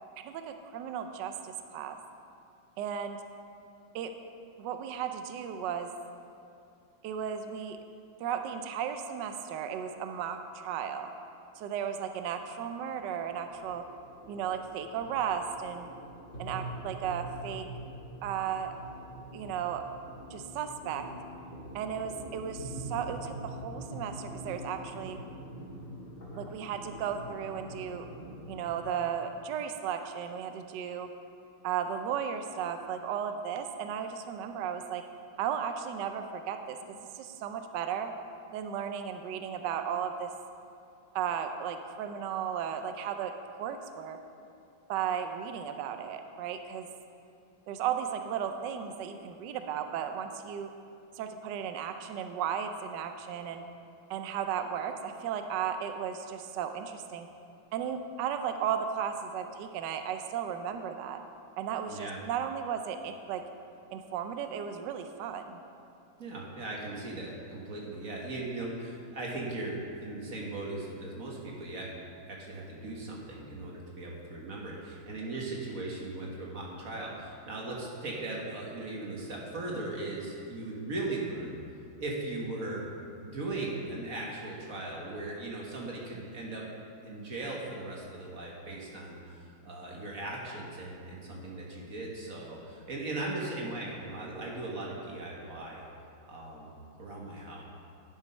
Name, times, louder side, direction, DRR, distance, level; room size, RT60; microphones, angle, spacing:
voice 1, 0.2-2.0 2.8-3.2 3.9-4.1 4.6-5.9 7.0-7.8 8.2-11.1 11.6-13.8 14.3-15.9 16.4-17.6 18.2-18.7 19.3-19.8 20.3-21.0 21.7-25.2 26.4-28.1 28.5-31.1 31.6-35.0 35.4-36.8 37.1-38.1 38.5-40.3 41.1-44.2 44.9-46.9 47.7-50.7 51.2-53.6 54.1-57.3 57.7-61.2 61.6-63.4 63.9-65.6, right 8 dB, 70° right, 7 dB, 1.2 m, -35 dB
sound 1, 12.3-29.0, right 1 dB, 35° left, 1.8 m, -44 dB
voice 2, 61.9-62.2 66.2-71.9 72.3-81.6 82.0-82.9 83.2-86.6 87.0-95.8 96.3-97.6, right 2 dB, 45° right, -3 dB, 1.6 m, -38 dB
11.0 x 6.0 x 5.4 m, 2.7 s
omnidirectional pair, 2.2 m